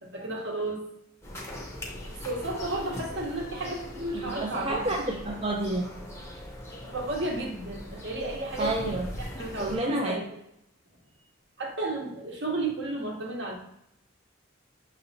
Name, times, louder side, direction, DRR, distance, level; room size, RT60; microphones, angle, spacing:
voice 1, 0.0-0.8 2.1-5.0 6.8-8.9 9.2-10.2 11.6-13.6, right 2 dB, 60° right, 0 dB, 1.0 m, -33 dB
sound 1, 1.2-9.8, left 1 dB, 15° left, 0.7 m, -41 dB
voice 2, 4.1-5.9 8.6-9.1 9.6-10.2, right 2 dB, 30° right, -1 dB, 0.4 m, -29 dB
6.1 x 3.0 x 2.7 m, 0.77 s
head